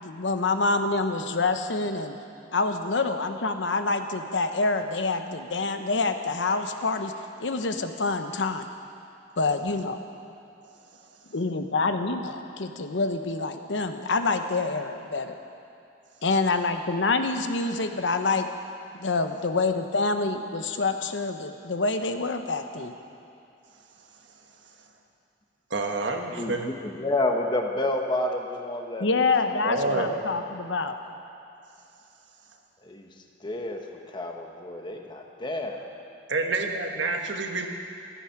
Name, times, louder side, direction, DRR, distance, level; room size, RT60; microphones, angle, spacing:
voice 1, 0.0-2.2 2.5-7.1 7.4-8.7 9.4-10.0 11.3-15.3 16.2-18.5 18.9-22.9 29.0-31.0, left 3 dB, 85° left, 7 dB, 0.9 m, -26 dB
voice 2, 25.7-26.7 29.6-30.2 36.3-37.7, right 3 dB, 75° right, 3 dB, 1.4 m, -28 dB
voice 3, 26.3-29.2 29.8-30.0 32.8-33.1 33.4-35.9, left 2 dB, 25° left, 3 dB, 1.3 m, -30 dB
15.0 x 13.0 x 5.9 m, 2.6 s
head